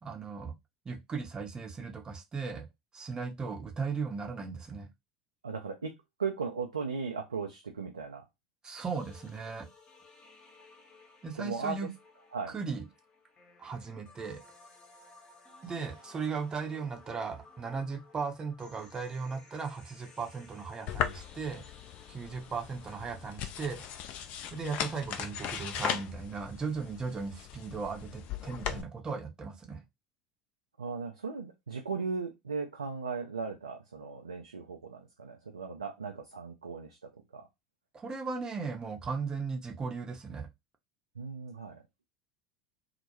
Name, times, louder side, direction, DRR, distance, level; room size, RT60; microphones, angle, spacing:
voice 1, 0.0-0.5 0.8-2.7 2.9-4.9 8.6-9.7 11.2-11.9 12.5-12.9 13.6-14.4 15.6-21.6 22.1-23.8 24.5-29.8 37.9-40.5, right 5 dB, 25° right, 0.7 m, -37 dB
voice 2, 5.4-8.2 11.4-11.9 12.3-12.5 30.8-37.5 41.2-41.8, right 5 dB, 85° right, 0.3 m, -37 dB
sound 1, 8.8-23.3, left 3 dB, 30° left, 0.8 m, -57 dB
sound 2, 20.9-28.8, left 9 dB, 45° left, 0.4 m, -38 dB
2.2 x 2.1 x 2.8 m
figure-of-eight pair, 75°, 3 cm